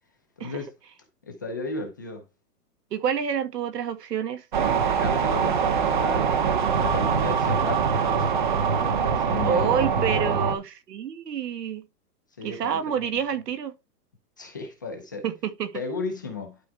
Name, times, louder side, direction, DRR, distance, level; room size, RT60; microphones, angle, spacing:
voice 1, 0.4-0.7 1.3-2.2 5.0-6.3 6.8-10.3 12.4-13.1 14.4-15.2 15.7-16.6, left 3 dB, 15° left, 0.5 m, -35 dB
voice 2, 2.9-4.4 8.7-8.9 9.5-11.8 12.4-13.7 15.2-15.8, right 8 dB, 90° right, 2.0 m, -28 dB
sound 1, 4.5-10.6, right 6 dB, 30° right, 0.7 m, -23 dB
11.5 x 4.7 x 3.4 m
hypercardioid pair, 175°, 47 cm